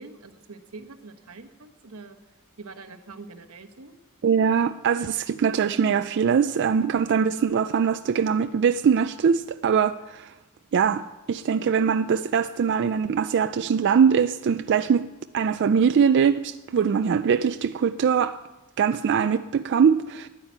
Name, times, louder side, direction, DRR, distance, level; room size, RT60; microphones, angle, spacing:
voice 1, 0.0-2.2 2.6-3.9, right 3 dB, 90° right, 1.1 m, -44 dB
voice 2, 4.2-10.3 10.7-15.1 15.3-18.4 18.8-20.3, right 7 dB, 55° right, 0.3 m, -22 dB
10.5 x 8.7 x 9.3 m
head